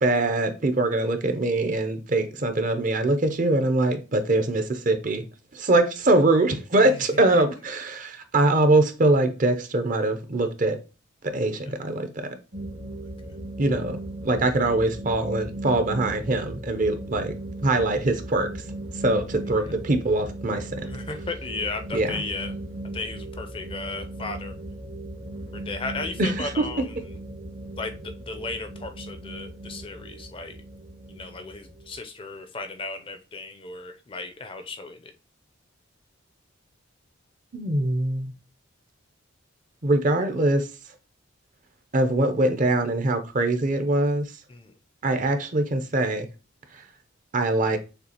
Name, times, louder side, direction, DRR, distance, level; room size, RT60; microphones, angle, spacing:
voice 1, 0.0-5.2 5.5-10.8 11.2-12.3 13.6-17.3 17.6-18.5 18.9-20.9 21.9-22.2 26.2-26.6 37.5-38.3 39.8-40.7 41.9-44.3 45.0-46.3 46.7-46.8 47.3-47.8, right 2 dB, 40° right, 0.6 m, -23 dB
sound 1, 12.5-32.0, right 1 dB, 65° right, 1.5 m, -37 dB
voice 2, 20.9-22.5 22.9-24.5 25.5-27.0 27.8-30.6 31.1-35.1 44.5-44.7, left 3 dB, 25° left, 0.4 m, -35 dB
6.6 x 2.4 x 2.8 m
head